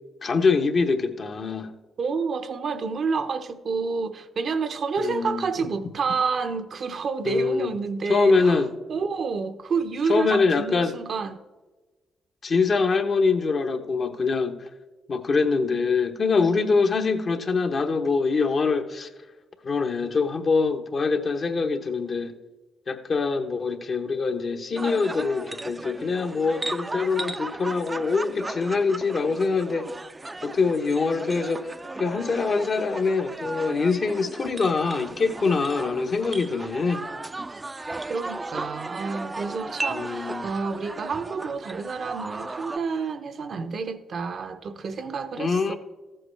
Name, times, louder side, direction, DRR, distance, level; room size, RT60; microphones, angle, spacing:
voice 1, 0.2-1.7 5.0-5.5 7.2-7.7 8.1-8.7 10.1-10.9 12.4-14.6 15.1-19.1 19.6-22.3 22.9-29.9 30.4-31.7 32.0-37.0 39.9-40.5 45.4-45.8, left 4 dB, 50° left, 1.0 m, -24 dB
voice 2, 2.0-8.6 8.9-11.4 38.1-45.8, right 5 dB, 55° right, 0.7 m, -29 dB
sound 1, 24.8-42.8, right 2 dB, 25° right, 0.4 m, -36 dB
14.0 x 7.7 x 3.3 m
supercardioid pair, 60°, 0 cm